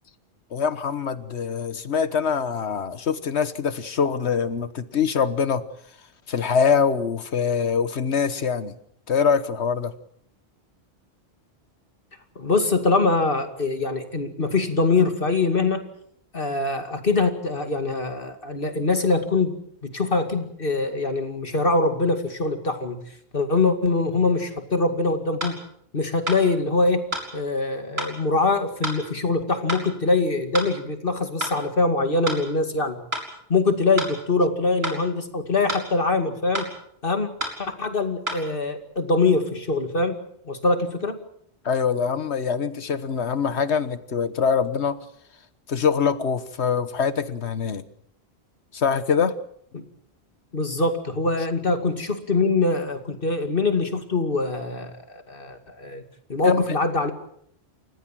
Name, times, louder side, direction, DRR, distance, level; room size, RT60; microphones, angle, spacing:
voice 1, 0.5-5.6 6.3-8.7 9.1-9.9 41.6-45.0 45.7-47.8 48.7-49.4 56.4-56.6, left 6 dB, 85° left, 13 dB, 1.5 m, -24 dB
voice 2, 12.4-15.9 16.3-23.0 23.3-25.6 25.9-27.0 27.3-33.0 33.5-36.7 37.0-37.3 37.6-41.2 49.7-49.8 50.5-56.0 56.3-57.1, left 3 dB, 55° left, 7 dB, 2.5 m, -23 dB
sound 1, 25.4-25.6 26.3-26.4 27.1-27.3 28.0-28.1 28.8-29.0 29.7-29.8 30.5-30.7 31.4-31.6 32.3-32.4 33.1-33.3 34.0-34.1 34.8-35.0 35.7-35.9 36.5-36.7 37.4-37.6 38.3-38.4, right 1 dB, 70° right, 4.9 m, -29 dB
29.0 x 15.0 x 7.6 m, 0.71 s
omnidirectional pair, 1.1 m